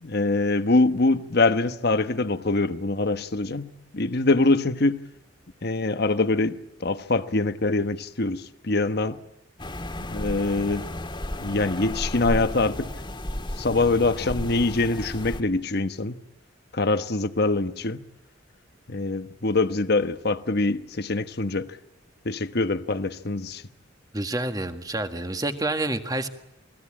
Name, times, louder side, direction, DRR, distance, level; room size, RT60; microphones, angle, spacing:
voice 1, 0.0-5.1 5.6-9.2 10.1-10.8 11.4-12.9 13.6-16.2 16.7-18.0 18.9-21.7 22.2-23.6, left 2 dB, 55° left, 1.1 m, -24 dB
sound 1, 9.6-15.4, left 1 dB, 25° left, 1.8 m, -33 dB
voice 2, 24.1-26.3, right 2 dB, 20° right, 1.7 m, -28 dB
28.5 x 20.5 x 8.8 m
head